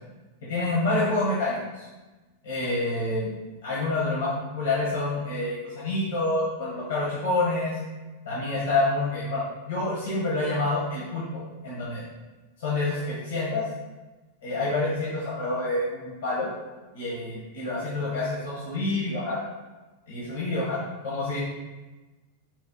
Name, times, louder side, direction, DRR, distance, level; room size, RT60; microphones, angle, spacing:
voice 1, 0.5-1.9 2.4-3.3 3.6-7.8 8.2-11.3 11.6-12.0 12.6-13.7 14.4-16.5 16.9-19.4 20.1-21.4, left 2 dB, 85° left, -7 dB, 1.2 m, -27 dB
4.6 x 2.1 x 3.9 m, 1.2 s
hypercardioid pair, 115°, 0 cm